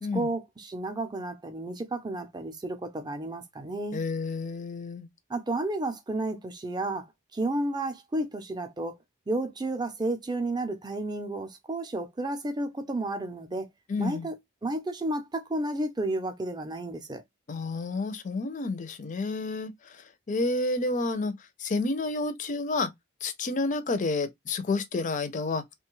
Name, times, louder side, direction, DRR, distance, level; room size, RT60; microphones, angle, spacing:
voice 1, 0.1-4.0 5.3-7.1 7.3-9.0 9.3-13.7 14.0-14.4 14.6-17.2, right 2 dB, 20° right, 0.5 m, -32 dB
voice 2, 3.9-5.1 13.9-14.3 17.5-21.3 21.6-22.9 23.2-25.6, left 3 dB, 35° left, 0.5 m, -30 dB
3.1 x 2.2 x 3.0 m
head